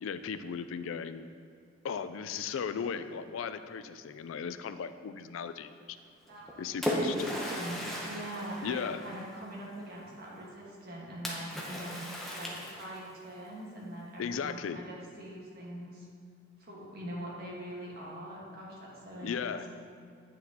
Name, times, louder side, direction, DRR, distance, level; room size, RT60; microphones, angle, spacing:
voice 1, 0.0-1.3 1.8-5.7 6.6-7.2 8.6-9.0 14.2-14.8 19.2-19.7, left 6 dB, 80° left, 11 dB, 0.3 m, -36 dB
Splash splatter, 6.3-9.5 11.3-13.2, equal, ahead, 0.8 m, -36 dB
voice 2, 6.3-16.1 16.6-19.7, right 1 dB, 50° right, -4 dB, 1.5 m, -43 dB
9.1 x 5.9 x 2.9 m, 2.3 s
head